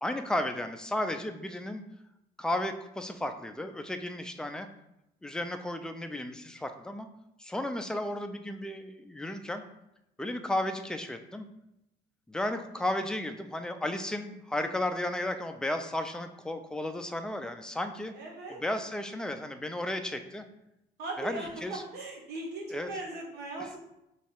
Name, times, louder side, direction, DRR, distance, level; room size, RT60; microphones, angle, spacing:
voice 1, 0.0-1.8 2.4-4.7 5.2-7.1 7.4-9.6 10.2-11.5 12.3-18.1 18.5-20.5 21.2-21.8 22.7-22.9, left 1 dB, 5° left, 7 dB, 0.3 m, -34 dB
voice 2, 18.1-18.6 21.0-21.5 21.9-23.8, right 2 dB, 70° right, -1 dB, 1.2 m, -38 dB
3.2 x 2.9 x 4.4 m, 0.84 s
cardioid pair, 110°, 17 cm